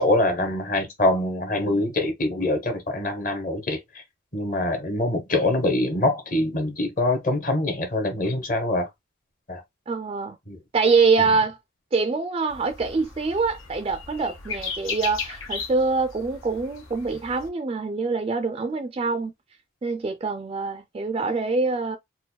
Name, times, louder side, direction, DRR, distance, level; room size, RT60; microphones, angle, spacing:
voice 1, 0.0-4.0 4.3-8.9 9.5-9.6 10.5-10.6, left 1 dB, 40° left, 1.0 m, -24 dB
voice 2, 9.9-10.4 10.7-11.6 11.9-19.3 19.8-22.0, right 4 dB, 30° right, 0.3 m, -24 dB
sound 1, 12.5-17.5, left 5 dB, 90° left, 1.2 m, -36 dB
4.4 x 2.2 x 2.2 m
head